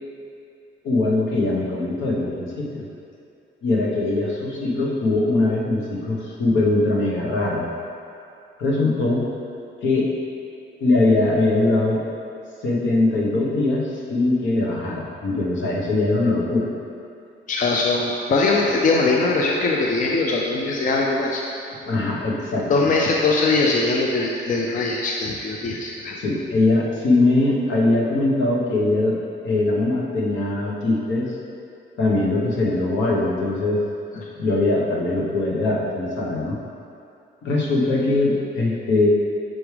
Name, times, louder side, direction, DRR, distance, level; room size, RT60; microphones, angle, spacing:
voice 1, 0.8-2.9 3.6-7.6 8.6-9.2 9.8-10.1 10.8-12.0 12.6-16.7 21.9-22.9 26.1-29.2 29.4-31.3 32.0-33.8 34.3-36.6 37.4-39.1, left 2 dB, 70° left, -3 dB, 1.1 m, -21 dB
voice 2, 17.5-21.4 22.7-26.2 34.1-34.3, left 3 dB, 40° left, -1 dB, 0.5 m, -21 dB
6.1 x 4.7 x 3.3 m, 2.5 s
cardioid pair, 90°, 20 cm